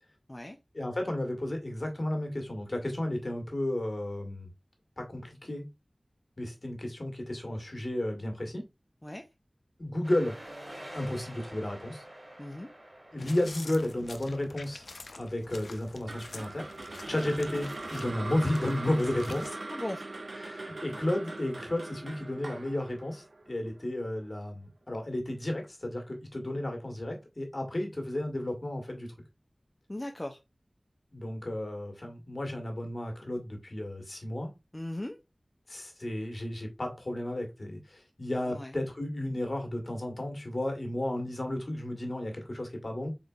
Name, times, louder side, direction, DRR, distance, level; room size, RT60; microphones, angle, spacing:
voice 1, 0.7-4.5 5.0-5.7 6.4-8.6 9.8-10.3 10.9-12.0 13.1-14.9 15.1-16.7 17.1-19.6 20.3-29.1 31.1-34.5 35.7-43.1, left 1 dB, 50° left, 1.4 m, -33 dB
sound 1, 10.0-15.2, right 1 dB, 40° right, 2.6 m, -48 dB
voice 2, 12.4-12.7 17.1-17.3 19.7-20.0 29.9-30.4 34.7-35.2 38.5-38.7, left 1 dB, 25° left, 0.6 m, -38 dB
sound 2, 13.2-19.5, left 3 dB, 85° left, 0.4 m, -48 dB
sound 3, 16.1-24.3, right 2 dB, 60° right, 0.4 m, -41 dB
3.9 x 3.7 x 2.3 m
wide cardioid pair, 45°, 0 cm